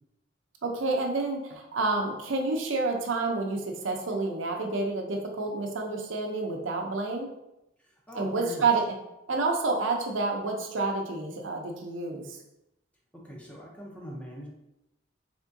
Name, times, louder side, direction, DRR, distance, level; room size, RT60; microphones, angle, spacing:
voice 1, 0.6-7.3 8.2-8.9 9.3-12.4, right 3 dB, 85° right, 2 dB, 0.6 m, -29 dB
voice 2, 7.8-8.6 13.2-14.5, equal, 5° left, -2 dB, 0.7 m, -42 dB
3.5 x 3.5 x 2.6 m, 0.88 s
head